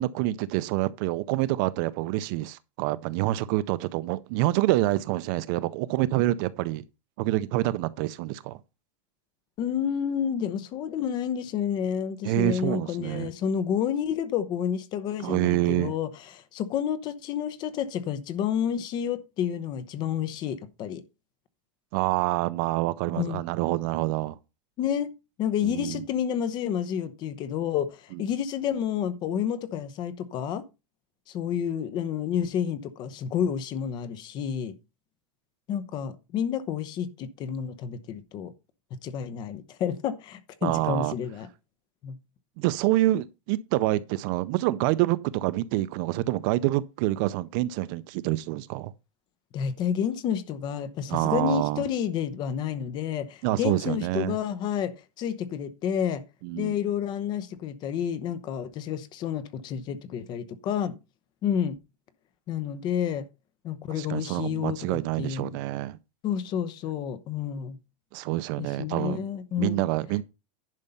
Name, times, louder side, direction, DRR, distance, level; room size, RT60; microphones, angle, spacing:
voice 1, 0.0-6.8 7.2-8.6 12.2-13.3 15.2-15.9 21.9-24.4 25.6-26.0 40.6-41.1 42.6-48.9 51.1-51.8 53.4-54.4 56.4-56.7 63.9-66.0 68.1-69.2 69.6-70.2, right 17 dB, 40° right, 0.5 m, -27 dB
voice 2, 9.6-21.0 23.1-23.4 24.8-25.1 25.4-30.6 31.3-34.7 35.7-38.5 39.0-41.5 42.0-42.2 49.5-54.9 55.2-56.2 56.5-60.9 61.4-61.8 62.5-63.3 63.6-65.5 66.2-67.8 68.6-69.8, left 8 dB, 25° left, 0.8 m, -30 dB
11.0 x 5.5 x 5.4 m
supercardioid pair, 175°, 16 cm